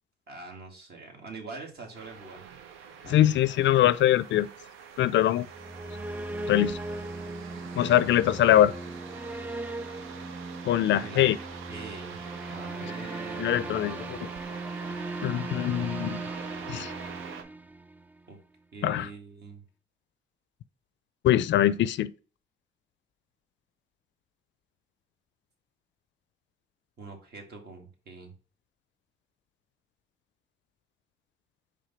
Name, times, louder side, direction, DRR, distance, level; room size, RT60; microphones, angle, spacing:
voice 1, 0.3-2.5 3.0-3.3 10.8-14.1 18.3-18.4 18.7-19.6 27.0-28.3, right 4 dB, 55° right, 2.2 m, -44 dB
sound 1, 1.9-17.4, right 7 dB, 90° right, 0.8 m, -45 dB
voice 2, 3.1-4.5 5.0-5.5 6.5-6.8 7.8-8.7 10.7-11.4 13.4-14.3 15.2-16.2 16.7-16.9 18.8-19.1 21.2-22.1, left 12 dB, 65° left, 0.4 m, -23 dB
sound 2, 5.4-18.2, right 2 dB, 10° right, 0.3 m, -38 dB
5.0 x 3.5 x 5.5 m
cardioid pair, 90°, 20 cm